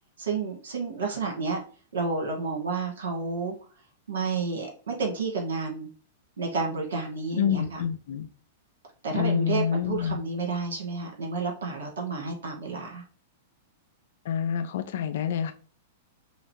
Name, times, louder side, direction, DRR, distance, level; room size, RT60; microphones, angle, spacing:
voice 1, 0.2-1.6 1.9-3.5 4.1-5.9 6.4-7.8 9.0-13.0, right 4 dB, 80° right, 1 dB, 1.4 m, -30 dB
voice 2, 7.3-8.3 9.1-10.2 14.3-15.5, left 8 dB, 65° left, 9 dB, 0.5 m, -27 dB
5.5 x 2.0 x 2.9 m, 0.39 s
hypercardioid pair, 110°, 0 cm